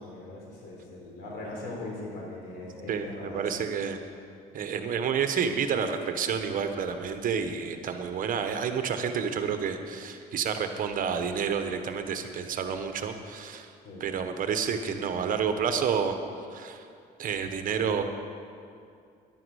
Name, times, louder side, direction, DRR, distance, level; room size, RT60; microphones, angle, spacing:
voice 1, 0.0-3.5 13.8-14.1, left 2 dB, 75° left, -2 dB, 4.3 m, -40 dB
voice 2, 2.9-4.0 4.5-13.7 14.0-16.1 16.5-16.9 17.2-18.0, right 6 dB, 55° right, 7 dB, 1.2 m, -29 dB
13.5 x 11.0 x 6.4 m, 2.4 s
cardioid pair, 110°, 17 cm